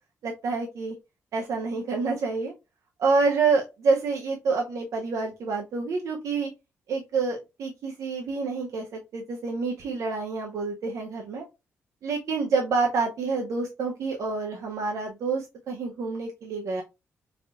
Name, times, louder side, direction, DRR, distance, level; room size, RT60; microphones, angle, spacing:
voice 1, 0.2-1.0 1.3-2.5 3.0-6.5 6.9-11.4 12.0-16.8, right 4 dB, 75° right, 0 dB, 0.8 m, -27 dB
3.9 x 3.5 x 2.2 m, 0.25 s
cardioid pair, 65°, 6 cm